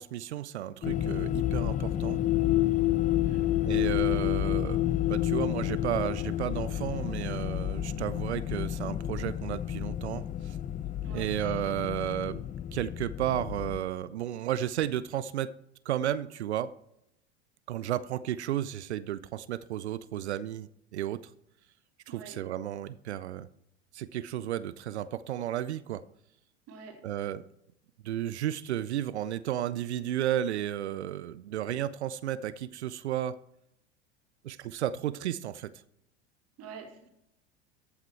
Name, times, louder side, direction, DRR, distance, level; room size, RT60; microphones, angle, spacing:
voice 1, 0.0-2.2 3.6-4.8 5.1-10.6 11.1-12.4 12.7-15.5 15.9-16.7 17.7-21.2 22.1-23.5 23.9-26.0 27.0-27.4 28.0-33.3 34.4-35.7, right 11 dB, 75° right, 0.5 m, -33 dB
sound 1, 0.8-13.8, left 13 dB, 25° left, 0.4 m, -30 dB
voice 2, 11.0-11.3 22.1-22.4 26.7-27.0 36.6-37.1, right 5 dB, 45° right, 2.5 m, -46 dB
14.5 x 5.9 x 4.5 m
figure-of-eight pair, 75°, 33 cm